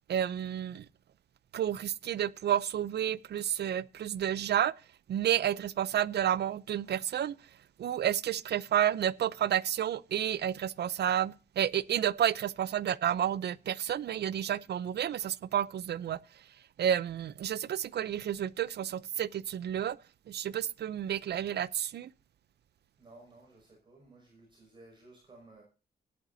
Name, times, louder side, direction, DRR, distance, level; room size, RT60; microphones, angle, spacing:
voice 1, 0.1-0.9 1.5-4.7 5.1-7.3 7.8-16.2 16.8-20.0 20.3-22.1, right 10 dB, 85° right, 0.6 m, -30 dB
voice 2, 23.0-25.6, right 2 dB, 30° right, 5.8 m, -56 dB
17.5 x 11.0 x 2.8 m
wide cardioid pair, 175°, 17 cm